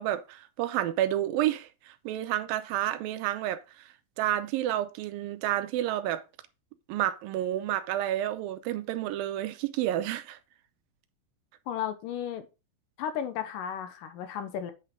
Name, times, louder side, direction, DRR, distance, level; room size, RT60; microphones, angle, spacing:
voice 1, 0.0-3.6 4.2-6.2 6.9-10.4, right 12 dB, 85° right, 2.4 m, -30 dB
voice 2, 11.7-12.5 13.0-14.7, left 9 dB, 75° left, 2.4 m, -34 dB
8.4 x 5.6 x 3.7 m
omnidirectional pair, 4.1 m